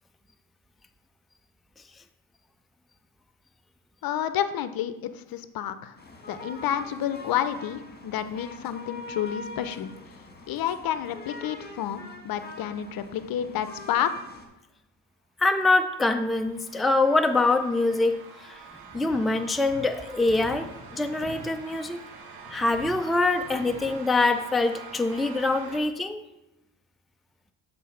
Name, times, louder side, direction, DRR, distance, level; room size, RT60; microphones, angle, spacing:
voice 1, 4.0-6.0 6.3-9.9 10.5-14.1, left 10 dB, 55° left, 12 dB, 0.7 m, -30 dB
sound 1, 6.0-14.5, left 2 dB, 25° left, 1.8 m, -43 dB
voice 2, 15.4-18.6 18.9-22.0 22.5-26.2, left 2 dB, ahead, 6 dB, 0.5 m, -24 dB
sound 2, 15.7-25.8, right 5 dB, 85° right, 1.4 m, -46 dB
sound 3, 18.8-21.5 22.4-24.0, equal, 50° right, 2.4 m, -44 dB
7.4 x 4.1 x 5.6 m, 0.94 s
supercardioid pair, 70°, 42 cm